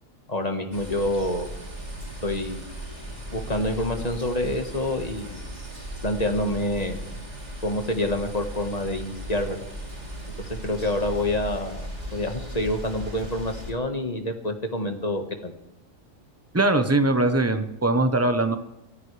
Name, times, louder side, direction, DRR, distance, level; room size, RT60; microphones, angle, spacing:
voice 1, 0.3-1.5 2.2-2.6 3.3-5.4 6.0-7.0 7.6-9.6 10.4-11.8 12.1-15.5, left 1 dB, 30° left, 5 dB, 1.7 m, -27 dB
sound 1, 0.7-13.7, right 1 dB, 30° right, 3.3 m, -37 dB
voice 2, 16.5-18.6, right 2 dB, 10° right, 8 dB, 1.0 m, -21 dB
24.5 x 14.5 x 3.4 m, 0.94 s
omnidirectional pair, 1.4 m